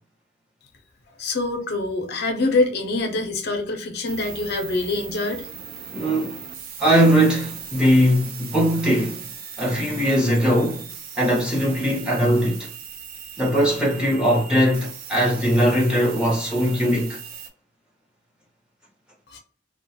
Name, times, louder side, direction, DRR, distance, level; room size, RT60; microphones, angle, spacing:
voice 1, 1.2-5.5 19.3-19.4, left 2 dB, 55° left, 0.5 m, -25 dB
sound 1, 4.1-17.5, right 7 dB, 50° right, 0.5 m, -39 dB
voice 2, 5.9-6.4 6.8-9.2 9.6-10.9 11.2-12.7 13.4-17.2, equal, 5° right, 0.8 m, -20 dB
2.3 x 2.2 x 2.7 m
head